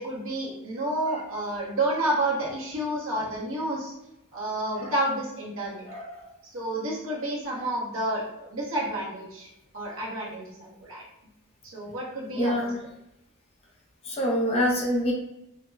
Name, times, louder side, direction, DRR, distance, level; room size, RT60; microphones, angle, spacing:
voice 1, 0.0-3.9 4.3-5.8 6.5-9.5 9.7-11.0 11.7-12.7, right 1 dB, 70° right, -4 dB, 1.0 m, -30 dB
voice 2, 5.9-6.2 12.4-12.8 14.0-15.1, equal, 30° left, -1 dB, 0.5 m, -26 dB
4.8 x 2.1 x 2.3 m, 0.87 s
head